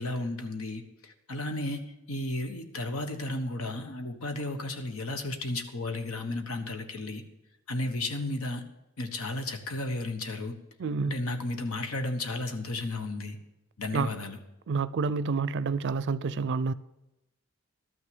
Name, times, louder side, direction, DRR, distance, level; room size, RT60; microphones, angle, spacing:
voice 1, 0.0-7.2 7.7-8.6 9.0-10.5 11.0-13.4 13.8-14.4, left 2 dB, 90° left, 1.3 m, -33 dB
voice 2, 10.8-11.2 13.9-14.1 14.7-16.7, right 4 dB, 55° right, 0.4 m, -28 dB
12.5 x 6.1 x 7.9 m
head